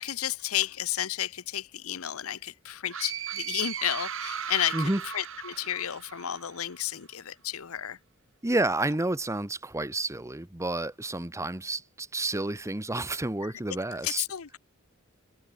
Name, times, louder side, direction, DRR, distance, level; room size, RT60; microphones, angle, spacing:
voice 1, 0.0-8.0 13.4-13.8 14.0-14.6, left 11 dB, 75° left, 0.8 m, -32 dB
sound 1, 2.9-6.6, right 8 dB, 65° right, 5.8 m, -36 dB
voice 2, 8.4-14.2, right 2 dB, 15° right, 0.9 m, -30 dB
head